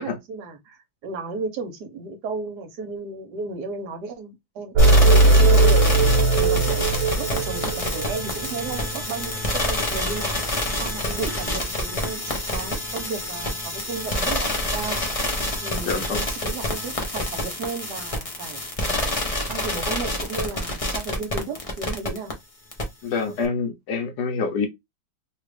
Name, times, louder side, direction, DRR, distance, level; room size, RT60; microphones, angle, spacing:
voice 1, 0.0-6.1 6.4-6.9 7.1-12.2 12.5-15.0 15.6-19.1 19.5-22.3, right 4 dB, 65° right, 1.3 m, -34 dB
sound 1, 4.8-22.3 22.7-22.8, left 1 dB, 40° left, 0.4 m, -27 dB
sound 2, 4.8-8.8, right 2 dB, 80° right, 1.3 m, -18 dB
voice 2, 15.8-16.2 23.0-24.7, left 5 dB, 65° left, 1.2 m, -27 dB
3.5 x 2.4 x 3.2 m
omnidirectional pair, 2.1 m